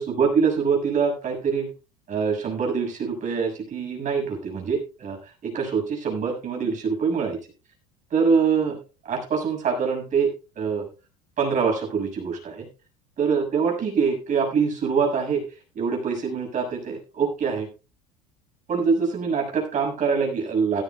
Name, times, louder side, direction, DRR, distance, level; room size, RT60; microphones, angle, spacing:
voice 1, 0.0-1.7 2.1-7.4 8.1-8.8 9.0-10.3 10.6-10.9 11.4-12.7 13.2-15.4 15.7-17.7 18.7-20.8, right 5 dB, 40° right, 2 dB, 6.5 m, -24 dB
17.5 x 13.5 x 2.4 m, 0.31 s
hypercardioid pair, 80°, 19 cm